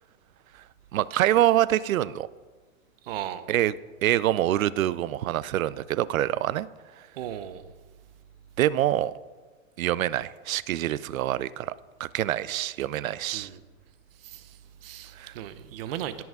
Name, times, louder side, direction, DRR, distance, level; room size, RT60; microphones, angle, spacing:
voice 1, 0.9-2.3 3.5-3.8 4.0-6.7 8.6-9.1 9.8-11.7 12.0-13.5 15.2-15.3, right 13 dB, 85° right, 0.6 m, -25 dB
voice 2, 3.0-3.5 7.2-7.7 13.3-13.6 14.2-16.2, right 11 dB, 45° right, 0.7 m, -37 dB
18.0 x 6.0 x 3.7 m
hypercardioid pair, 150°, 40 cm